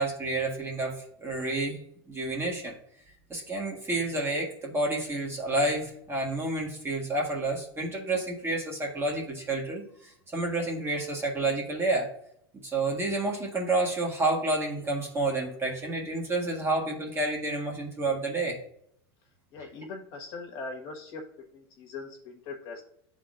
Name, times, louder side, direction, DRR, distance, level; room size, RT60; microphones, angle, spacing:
voice 1, 0.0-1.8 2.1-2.8 3.3-12.1 12.6-18.6, right 2 dB, 15° right, -1 dB, 1.5 m, -29 dB
voice 2, 19.5-21.2 21.5-22.8, left 3 dB, 55° left, 0 dB, 1.5 m, -40 dB
11.0 x 3.7 x 2.5 m, 0.70 s
supercardioid pair, 120°, 14 cm